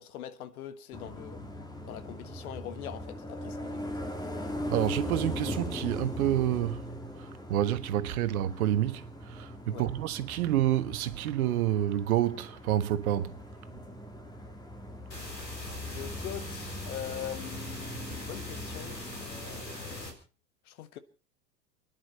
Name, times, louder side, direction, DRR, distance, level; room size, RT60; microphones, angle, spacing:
voice 1, 0.0-1.5 1.8-3.9 9.7-9.9 15.9-20.2 20.6-21.0, left 10 dB, 60° left, 1.6 m, -42 dB
sound 1, 0.9-20.1, left 1 dB, 10° left, 2.0 m, -40 dB
voice 2, 4.7-6.8 7.2-13.4, right 12 dB, 60° right, 1.4 m, -28 dB
sound 2, 15.1-20.1, left 2 dB, 85° left, 4.3 m, -42 dB
29.5 x 10.5 x 4.2 m
figure-of-eight pair, 90°, 49 cm